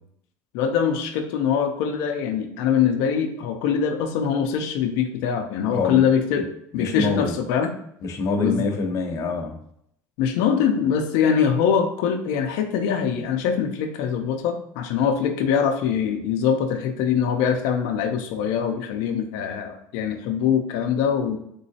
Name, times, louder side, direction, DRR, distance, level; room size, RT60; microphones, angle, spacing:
voice 1, 0.5-6.4 6.7-7.7 8.4-8.6 10.2-21.4, left 7 dB, 85° left, 4 dB, 0.5 m, -23 dB
voice 2, 5.7-6.0 6.4-6.5 6.7-7.4 8.0-9.6, left 3 dB, 45° left, 4 dB, 0.8 m, -25 dB
3.7 x 3.0 x 2.7 m, 0.71 s
cardioid pair, 125°, 7 cm